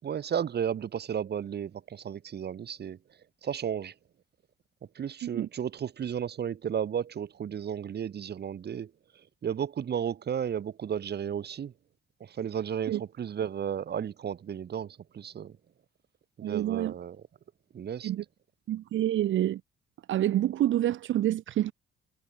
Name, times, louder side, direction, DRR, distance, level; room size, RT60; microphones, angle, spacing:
voice 1, 0.0-3.0 3.4-3.9 5.0-8.9 9.4-11.7 12.2-15.5 16.4-17.2 17.7-18.1, right 8 dB, 55° right, 3.8 m, -33 dB
voice 2, 16.4-16.9 18.0-18.2 18.7-19.6 20.1-21.7, right 12 dB, 75° right, 2.0 m, -27 dB
cardioid pair, 90°, 20 cm